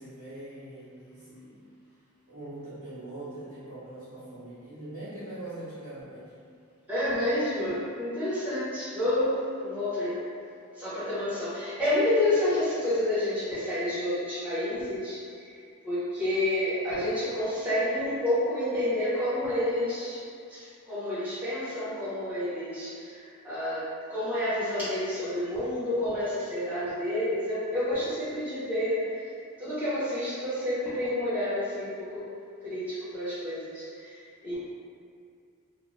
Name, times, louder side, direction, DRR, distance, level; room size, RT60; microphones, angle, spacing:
voice 1, 0.0-1.6 2.3-6.3, right 1 dB, 40° right, -15 dB, 1.0 m, -42 dB
voice 2, 6.9-10.3 10.7-15.5 15.8-20.2 20.5-29.0 29.6-32.2 32.6-34.5, left 1 dB, 10° right, -13 dB, 1.1 m, -29 dB
2.5 x 2.4 x 3.1 m, 2.3 s
head